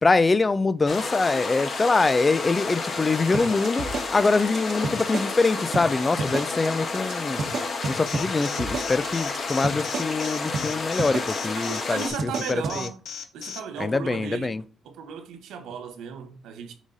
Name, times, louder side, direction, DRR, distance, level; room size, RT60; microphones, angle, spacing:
voice 1, 0.0-7.4 7.9-12.9 13.8-14.6, left 3 dB, 25° left, 0.4 m, -24 dB
sound 1, 0.9-12.1, left 4 dB, 50° left, 1.4 m, -31 dB
sound 2, 3.3-5.5 5.7-5.9 6.2-6.7 6.9-7.1 7.4-10.3 10.5-10.7 11.0-11.5 11.7-11.9 12.2-12.8, right 4 dB, 55° right, 1.1 m, -31 dB
Alarm, 8.1-13.6, left 7 dB, 70° left, 0.8 m, -36 dB
voice 2, 11.6-13.0 13.3-14.6 14.8-16.7, right 7 dB, 85° right, 1.0 m, -35 dB
6.1 x 4.0 x 3.9 m
cardioid pair, 90°, 0 cm